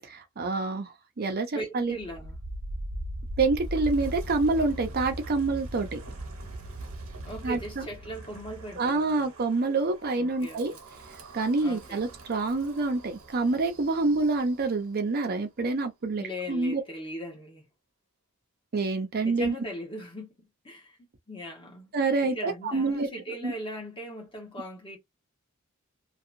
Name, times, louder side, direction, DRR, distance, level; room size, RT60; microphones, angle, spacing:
voice 1, 0.1-2.0 3.4-6.0 7.4-7.9 8.8-10.7 11.3-16.8 18.7-19.6 21.9-23.1 23.4-23.5, right 3 dB, 45° right, 0.6 m, -27 dB
voice 2, 1.5-2.4 7.2-9.3 10.2-10.8 11.6-12.0 16.2-17.6 19.2-20.4 20.6-21.0 21.3-21.9 22.2-25.0, equal, 25° left, 1.1 m, -39 dB
Wind, 1.9-14.9, right 1 dB, 85° right, 0.9 m, -40 dB
2.7 x 2.3 x 2.5 m
head